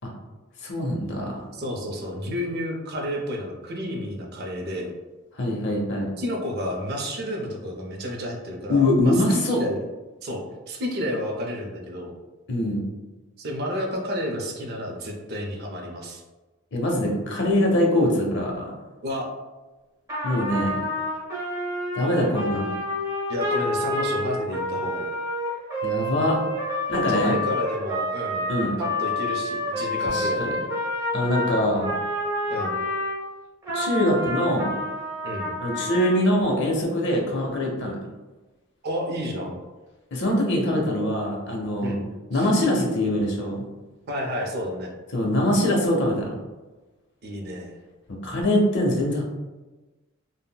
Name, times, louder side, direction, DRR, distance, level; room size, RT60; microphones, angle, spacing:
voice 1, 0.6-1.4 5.4-6.1 8.7-9.6 12.5-12.9 16.7-18.7 20.2-20.8 21.9-22.7 25.8-26.4 26.9-27.4 28.5-28.8 30.0-30.5 31.1-31.9 33.7-34.7 35.6-37.9 40.1-41.9 42.3-43.7 45.1-46.3 48.2-49.2, left 1 dB, 55° left, -1 dB, 0.6 m, -23 dB
voice 2, 1.5-4.9 6.2-9.8 10.2-10.4 10.7-12.1 13.4-16.2 19.0-19.3 23.3-25.1 26.9-28.5 28.8-30.6 32.5-32.8 35.2-35.5 38.8-39.5 41.8-42.5 44.1-44.9 47.2-47.8, equal, 50° right, 1 dB, 0.5 m, -31 dB
Trumpet, 20.1-33.2 33.6-36.2, left 1 dB, 15° right, 0.9 m, -28 dB
3.6 x 2.0 x 2.2 m, 1.2 s
head